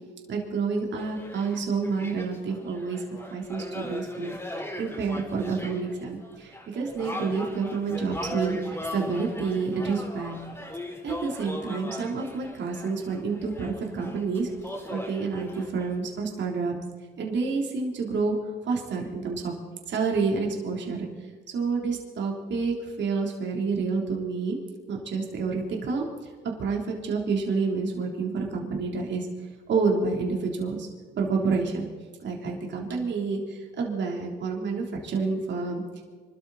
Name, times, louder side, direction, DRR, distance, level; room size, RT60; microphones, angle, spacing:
voice 1, 0.3-3.0 3.3-4.4 4.8-10.4 11.0-14.5 14.9-16.8 17.2-18.4 18.7-19.5 19.9-21.1 21.5-24.6 24.9-26.0 26.6-29.3 29.7-30.9 31.1-31.9 32.2-35.8, right 4 dB, 65° right, 0 dB, 3.6 m, -28 dB
sound 1, 1.0-16.0, left 1 dB, 10° left, 4.1 m, -39 dB
25.5 x 13.0 x 4.3 m, 1.5 s
cardioid pair, 90°, 20 cm